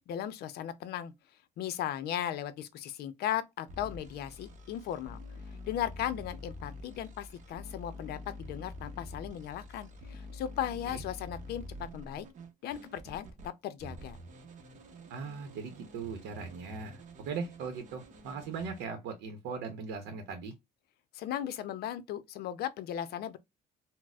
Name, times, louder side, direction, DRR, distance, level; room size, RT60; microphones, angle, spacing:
voice 1, 0.1-1.1 1.6-5.2 5.7-12.3 12.6-14.2 21.1-23.4, left 11 dB, 70° left, 0.5 m, -37 dB
sound 1, 3.7-13.5 13.8-18.9, left 1 dB, 45° right, 0.8 m, -47 dB
voice 2, 15.1-20.5, right 5 dB, 80° right, 0.7 m, -39 dB
4.0 x 2.0 x 2.3 m
cardioid pair, 110°, 17 cm